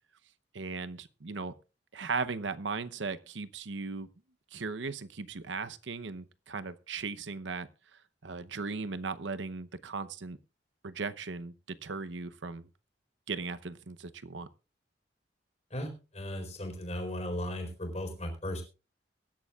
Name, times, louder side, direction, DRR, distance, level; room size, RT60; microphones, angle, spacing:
voice 1, 0.5-1.5 1.9-4.1 4.5-7.7 8.2-10.4 10.8-12.7 13.3-14.5, right 4 dB, 90° right, 0.8 m, -37 dB
voice 2, 15.7-18.6, left 1 dB, 35° left, 4.3 m, -36 dB
22.5 x 11.0 x 2.4 m
head